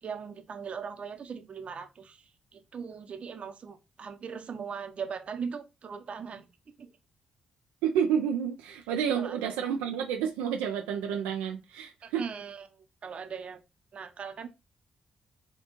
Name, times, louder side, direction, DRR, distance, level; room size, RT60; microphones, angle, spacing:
voice 1, 0.0-6.5 6.8-6.9 9.2-9.4 12.0-13.6 13.9-14.5, right 6 dB, 55° right, 0.8 m, -39 dB
voice 2, 7.8-12.2, right 8 dB, 90° right, 0.4 m, -30 dB
4.4 x 2.3 x 3.0 m
hypercardioid pair, 45°, 2 cm